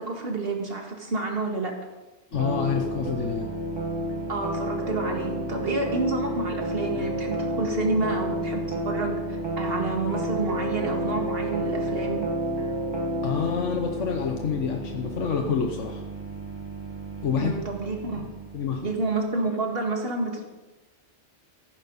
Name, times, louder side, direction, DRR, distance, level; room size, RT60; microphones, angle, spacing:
voice 1, 0.0-1.8 4.3-12.3 17.4-18.3 18.8-20.4, right 3 dB, 55° right, 2 dB, 2.2 m, -29 dB
voice 2, 2.3-3.5 13.2-16.0 17.2-17.5 18.2-18.3 18.5-18.9, left 6 dB, 85° left, 4 dB, 1.3 m, -27 dB
sound 1, 2.3-19.1, equal, 20° right, 1.7 m, -31 dB
15.0 x 12.0 x 4.1 m, 1.1 s
omnidirectional pair, 1.2 m